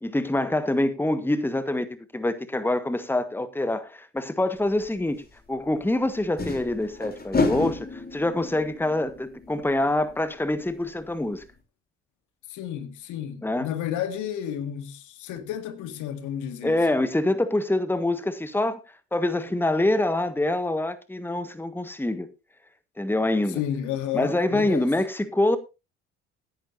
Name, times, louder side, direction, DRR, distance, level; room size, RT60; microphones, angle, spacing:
voice 1, 0.0-1.9 2.1-5.2 5.5-11.4 13.4-13.7 16.6-18.8 19.1-22.3 23.0-23.6 24.1-25.6, left 1 dB, 5° left, 1.5 m, -25 dB
sound 1, 4.8-4.9 6.2-10.7 11.0-11.1 11.4-11.5, left 3 dB, 30° left, 3.5 m, -31 dB
voice 2, 12.5-16.9 23.5-24.9, left 10 dB, 65° left, 2.0 m, -32 dB
17.0 x 10.5 x 2.7 m
hypercardioid pair, 55°, 32 cm